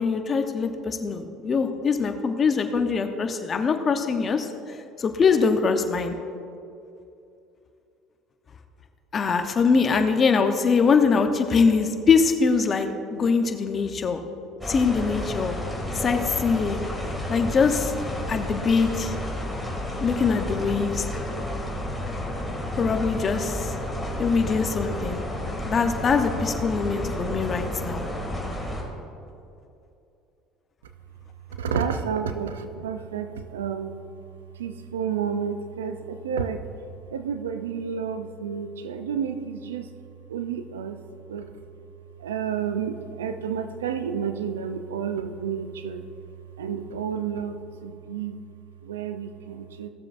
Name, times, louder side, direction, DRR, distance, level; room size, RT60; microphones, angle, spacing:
voice 1, 0.0-4.5 5.0-6.2 9.1-14.2 14.7-15.6 15.9-16.9 17.3-17.9 18.3-19.1 20.0-21.0 22.8-23.7 24.2-25.2 25.7-28.1, left 5 dB, 35° left, 6 dB, 0.9 m, -23 dB
sound 1, 14.6-28.8, left 1 dB, 5° left, 2.4 m, -31 dB
voice 2, 31.5-33.9 34.6-36.6 37.1-39.9 40.3-41.0 41.3-41.5 42.2-46.0 46.6-48.4 48.8-49.9, right 7 dB, 90° right, 9 dB, 0.5 m, -30 dB
16.5 x 7.3 x 2.6 m, 2.7 s
hypercardioid pair, 75°, 0 cm